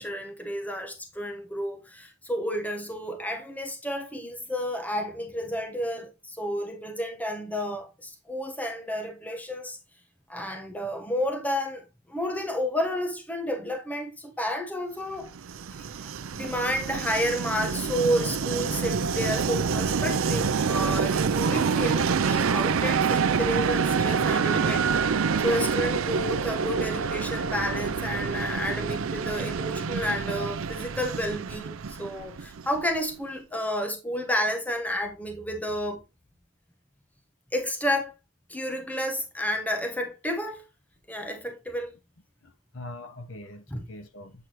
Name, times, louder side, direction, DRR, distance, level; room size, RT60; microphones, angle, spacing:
voice 1, 0.0-9.8 10.3-15.3 15.7-24.9 25.4-36.0 37.5-38.1 38.5-40.6 41.1-41.9 43.7-43.8, equal, 5° left, 1.1 m, -31 dB
Train, 15.2-33.0, right 5 dB, 70° right, 0.5 m, -27 dB
voice 2, 42.4-44.5, left 1 dB, 60° left, 0.9 m, -43 dB
8.2 x 4.4 x 3.0 m
head